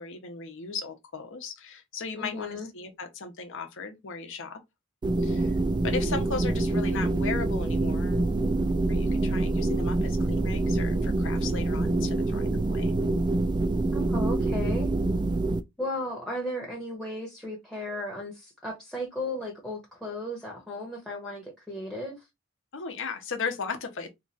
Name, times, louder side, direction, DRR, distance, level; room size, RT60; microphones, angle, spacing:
voice 1, 0.0-4.6 5.2-5.6 5.8-8.2 8.9-12.9 22.7-24.1, left 5 dB, 60° left, 0.8 m, -36 dB
voice 2, 2.2-2.7 13.9-14.9 15.8-22.2, left 1 dB, ahead, 0.8 m, -35 dB
sound 1, 5.0-15.6, right 2 dB, 20° right, 0.3 m, -26 dB
3.0 x 2.4 x 3.9 m
head